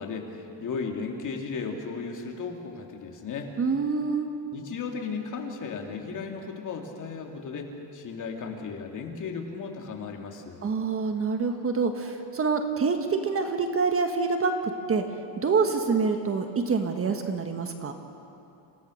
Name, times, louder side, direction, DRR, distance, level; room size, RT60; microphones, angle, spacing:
voice 1, 0.0-3.5 4.5-10.6, left 5 dB, 40° left, 2 dB, 2.7 m, -35 dB
voice 2, 3.6-4.3 10.6-14.5 14.9-15.0 15.4-17.9, right 4 dB, 30° right, 5 dB, 1.5 m, -26 dB
27.5 x 17.0 x 6.5 m, 2.7 s
cardioid pair, 130°, 45 cm